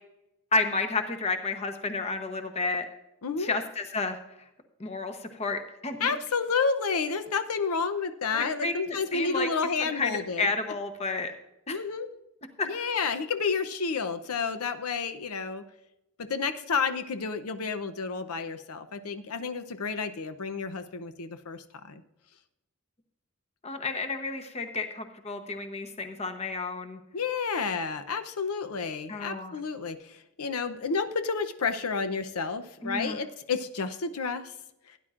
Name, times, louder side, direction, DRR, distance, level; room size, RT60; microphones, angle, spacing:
voice 1, 0.5-2.9 3.4-4.2 4.8-6.1 8.3-9.5 9.8-11.3 11.7-11.8 12.6-12.7 23.6-27.0 29.1-29.6 32.8-33.2, left 3 dB, 30° left, 7 dB, 0.9 m, -31 dB
voice 2, 3.2-3.6 6.0-10.5 11.7-12.1 12.6-15.6 16.2-22.0 27.1-34.5, left 5 dB, 85° left, 9 dB, 0.7 m, -30 dB
16.5 x 10.0 x 2.5 m, 0.91 s
head